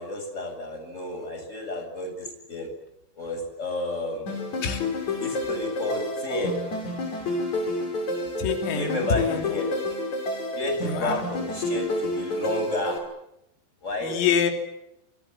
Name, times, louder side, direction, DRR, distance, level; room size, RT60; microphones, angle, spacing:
voice 1, 0.0-2.7 3.2-4.3 5.2-6.6 8.7-9.7 10.5-13.0 13.8-14.2, left 2 dB, 15° left, 5 dB, 7.6 m, -31 dB
sound 1, 4.3-13.0, left 2 dB, 35° left, 7.4 m, -29 dB
voice 2, 8.4-9.5 10.8-11.2 14.0-14.5, left 7 dB, 85° left, 5 dB, 5.8 m, -26 dB
28.5 x 26.5 x 7.6 m, 0.82 s
omnidirectional pair, 5.8 m